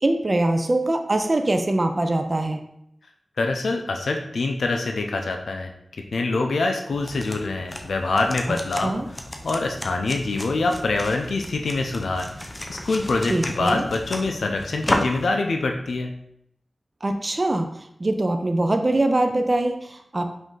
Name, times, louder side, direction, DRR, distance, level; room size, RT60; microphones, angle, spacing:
voice 1, 0.0-2.6 8.8-9.1 13.3-13.9 17.0-20.3, right 2 dB, 35° right, 6 dB, 0.4 m, -23 dB
voice 2, 3.4-5.7 6.1-9.0 9.4-12.3 12.7-16.1, left 3 dB, 80° left, 3 dB, 0.4 m, -25 dB
sound 1, 6.9-15.3, left 1 dB, 25° left, 0.5 m, -33 dB
5.1 x 2.6 x 3.8 m, 0.75 s
wide cardioid pair, 70°, 0 cm